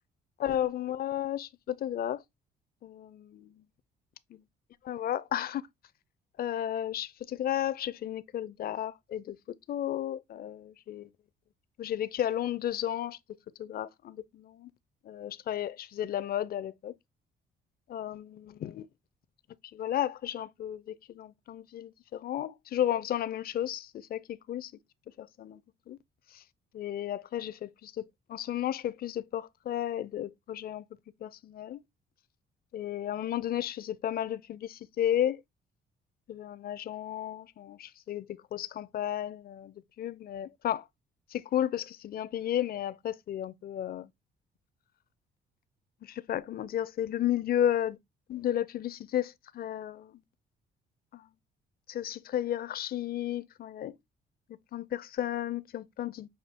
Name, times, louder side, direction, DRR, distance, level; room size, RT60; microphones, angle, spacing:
voice 1, 0.4-2.2 3.3-3.6 4.3-4.4 4.8-5.6 6.4-9.4 9.7-11.1 11.8-13.2 13.6-14.7 15.0-16.9 17.9-18.9 19.7-24.7 25.2-25.6 25.9-26.0 26.3-26.4 26.7-30.8 31.2-31.8 32.7-35.4 36.3-40.9 41.3-44.1 46.0-48.0 48.3-50.2 51.1-51.3 51.9-54.0 54.7-56.3, left 11 dB, 50° left, 0.4 m, -33 dB
5.7 x 2.3 x 3.5 m
cardioid pair, 90°, 20 cm